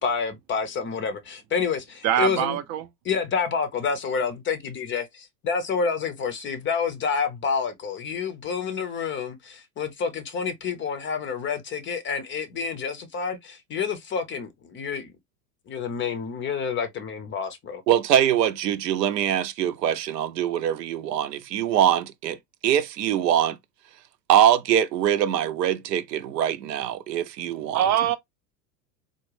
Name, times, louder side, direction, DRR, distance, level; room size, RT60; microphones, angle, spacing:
voice 1, 0.0-2.6 3.1-15.1 15.7-17.8, left 6 dB, 25° left, 0.6 m, -28 dB
voice 2, 2.0-2.9 27.7-28.2, right 10 dB, 35° right, 0.5 m, -23 dB
voice 3, 17.9-22.4 22.6-23.6 24.3-27.8, right 10 dB, 75° right, 0.6 m, -23 dB
3.7 x 2.1 x 3.1 m
hypercardioid pair, 90°, 49 cm